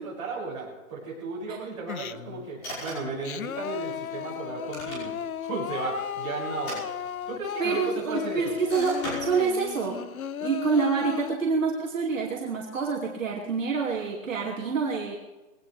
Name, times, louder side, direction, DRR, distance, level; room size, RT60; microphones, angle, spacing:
voice 1, 0.0-5.1 5.4-6.8 7.3-8.5, right 4 dB, 25° right, -7 dB, 6.5 m, -35 dB
Singing, 1.9-2.5 3.0-11.3, left 8 dB, 85° left, 0.9 m, -35 dB
sound 1, 2.6-3.2 4.5-5.4 6.5-7.5 8.7-9.7, equal, 20° left, 5.8 m, -38 dB
voice 2, 7.6-10.1 10.4-15.2, right 5 dB, 65° right, -2 dB, 2.7 m, -27 dB
21.0 x 18.5 x 3.4 m, 1.2 s
hypercardioid pair, 180°, 42 cm